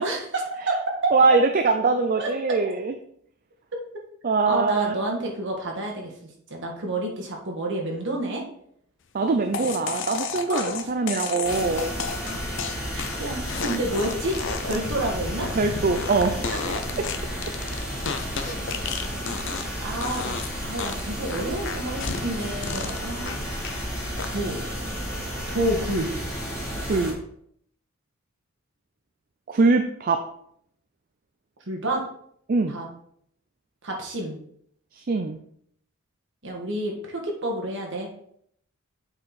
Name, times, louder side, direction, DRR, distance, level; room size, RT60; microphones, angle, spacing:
voice 1, 0.0-1.1 2.2-2.3 4.5-6.1 6.5-8.4 9.2-9.3 9.9-10.0 10.5-10.7 12.9-14.4 14.6-15.5 16.7-16.8 19.8-20.4 20.6-23.8 24.3-24.6 25.5-26.1 31.7-32.0 32.7-32.9 33.8-34.4 36.4-38.1, right 1 dB, 60° right, 0 dB, 1.8 m, -29 dB
voice 2, 1.1-2.9 4.2-4.9 9.1-11.9 15.6-16.6 17.0-17.1 18.4-18.6 26.9-27.2 29.5-30.2 32.5-32.8 35.0-35.4, right 3 dB, 40° right, 6 dB, 0.4 m, -23 dB
sound 1, 9.5-19.8 20.0-20.5 20.8-23.8 24.2-24.6, left 5 dB, 60° left, 0.7 m, -33 dB
sound 2, 11.4-27.1, equal, 5° right, 2.9 m, -32 dB
7.8 x 4.5 x 4.1 m, 0.67 s
head